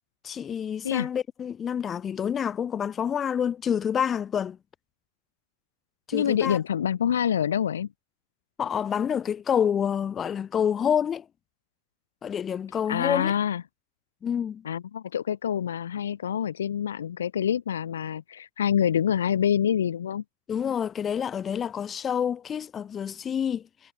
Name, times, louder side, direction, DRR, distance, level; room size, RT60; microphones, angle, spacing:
voice 1, 0.2-4.6 6.1-6.6 8.6-11.3 12.2-13.3 14.2-14.6 20.5-23.6, left 8 dB, 20° left, 2.1 m, -28 dB
voice 2, 6.1-7.9 12.9-13.6 14.6-20.2, left 9 dB, 90° left, 6.0 m, -26 dB
hypercardioid pair, 130°, 0 cm